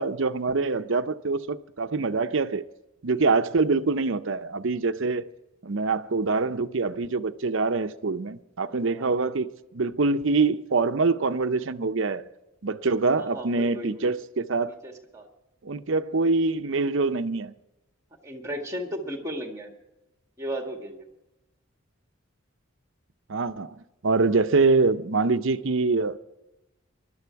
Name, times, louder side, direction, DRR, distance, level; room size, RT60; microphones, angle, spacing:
voice 1, 0.0-2.6 3.0-5.3 5.6-12.3 12.6-14.8 15.6-17.5 23.3-23.8 24.0-26.2, right 3 dB, 65° right, 0.7 m, -25 dB
voice 2, 8.7-9.1 13.2-14.1 14.8-15.3 18.2-19.7 20.4-21.1, equal, 15° right, 2.0 m, -35 dB
20.0 x 12.0 x 4.7 m
head